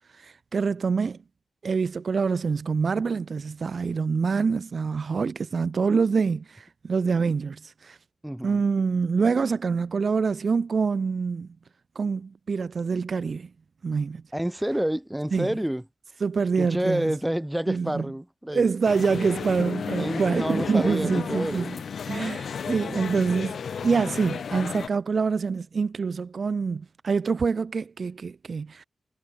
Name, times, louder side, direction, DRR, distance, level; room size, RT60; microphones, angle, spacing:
voice 1, 0.1-1.2 1.6-8.0 8.4-11.5 12.0-13.5 13.8-14.2 15.3-15.5 16.2-17.2 17.7-18.1 18.5-21.8 22.1-28.8, right 5 dB, 55° right, 0.4 m, -26 dB
voice 2, 8.2-8.6 14.3-15.8 16.5-18.7 19.9-21.7, right 1 dB, 5° right, 1.7 m, -28 dB
sound 1, 18.8-24.9, left 6 dB, 75° left, 0.8 m, -33 dB
wide cardioid pair, 120°, 0 cm